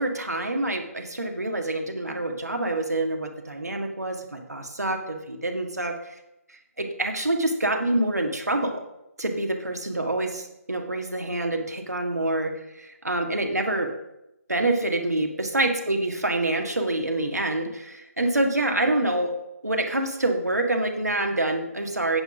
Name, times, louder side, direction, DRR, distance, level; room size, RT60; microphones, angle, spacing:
voice 1, 0.0-5.9 6.5-8.9 9.2-12.5 12.8-13.9 14.5-19.3 19.6-22.2, right 2 dB, 80° right, 3 dB, 1.7 m, -26 dB
9.0 x 5.6 x 6.2 m, 0.87 s
figure-of-eight pair, 145°, 9 cm